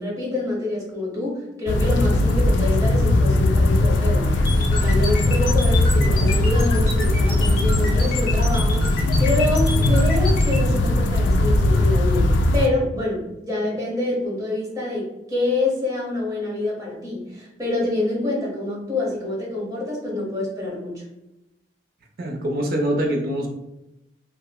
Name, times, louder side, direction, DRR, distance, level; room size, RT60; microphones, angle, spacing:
voice 1, 0.0-4.4 4.7-21.0, left 2 dB, 20° right, -4 dB, 0.9 m, -26 dB
sound 1, 1.7-12.7, left 1 dB, 80° left, 0.3 m, -19 dB
sound 2, 4.4-10.6, left 4 dB, 55° left, 0.7 m, -31 dB
voice 2, 22.2-23.5, right 1 dB, 60° right, 2 dB, 0.5 m, -24 dB
3.0 x 2.0 x 2.2 m, 0.91 s
head